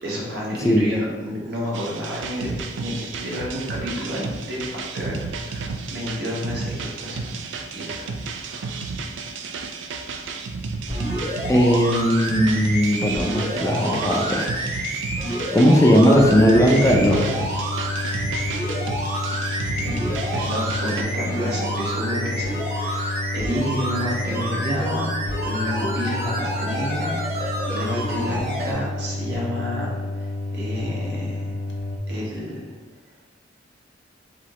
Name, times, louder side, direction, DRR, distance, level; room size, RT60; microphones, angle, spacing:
voice 1, 0.0-8.8 19.8-19.9 20.3-25.1 25.4-29.9 30.2-31.5 32.1-32.7, equal, 65° right, -5 dB, 1.2 m, -30 dB
voice 2, 0.6-0.9 11.5-14.5 15.5-17.3, equal, 15° left, 0 dB, 0.4 m, -17 dB
sound 1, 1.7-21.0, right 4 dB, 85° right, 0.4 m, -32 dB
sound 2, 10.9-28.7 29.3-29.4, right 1 dB, 40° right, 1.3 m, -29 dB
sound 3, 16.6-32.0, left 2 dB, 90° left, 0.6 m, -30 dB
4.8 x 3.0 x 3.0 m, 1.2 s
head